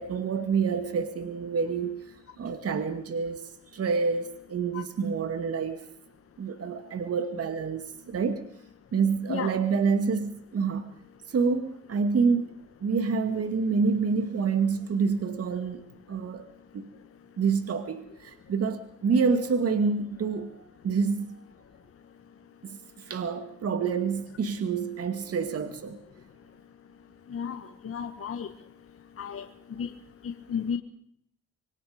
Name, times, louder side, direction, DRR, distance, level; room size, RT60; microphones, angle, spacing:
voice 1, 0.0-5.9 6.4-8.5 8.9-10.9 11.3-12.5 12.8-16.5 16.7-16.9 17.4-21.4 22.6-26.0, right 5 dB, 50° right, 8 dB, 2.2 m, -28 dB
voice 2, 27.3-28.5 29.2-29.5 29.8-29.9 30.2-30.8, left 7 dB, 50° left, 6 dB, 1.8 m, -33 dB
26.0 x 23.0 x 5.2 m, 0.68 s
cardioid pair, 90°, 30 cm